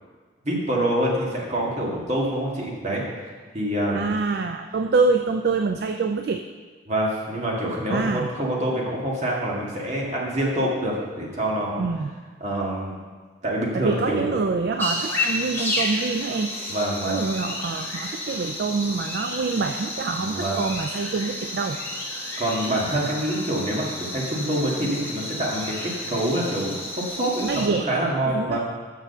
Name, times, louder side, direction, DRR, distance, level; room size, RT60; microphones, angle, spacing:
voice 1, 0.4-4.0 6.9-11.8 12.4-12.9 13.4-14.4 16.7-17.2 20.2-20.6 22.4-28.6, right 1 dB, 40° right, -3 dB, 1.8 m, -26 dB
voice 2, 3.9-6.5 7.9-8.3 11.8-12.1 13.7-16.5 17.0-21.8 27.4-27.9 28.3-28.6, right 4 dB, 55° right, 6 dB, 0.4 m, -25 dB
sound 1, 14.8-27.7, left 1 dB, 10° left, 1.4 m, -31 dB
6.7 x 6.1 x 6.7 m, 1.5 s
head